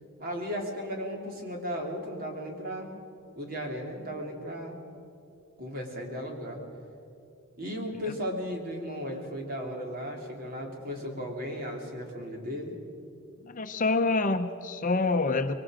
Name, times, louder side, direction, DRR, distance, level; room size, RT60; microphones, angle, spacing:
voice 1, 0.2-2.9 3.4-4.8 5.6-6.6 7.6-12.7, equal, 45° right, 1 dB, 3.2 m, -35 dB
voice 2, 13.4-15.5, left 3 dB, 40° left, 8 dB, 0.7 m, -26 dB
25.5 x 22.0 x 5.0 m, 2.7 s
head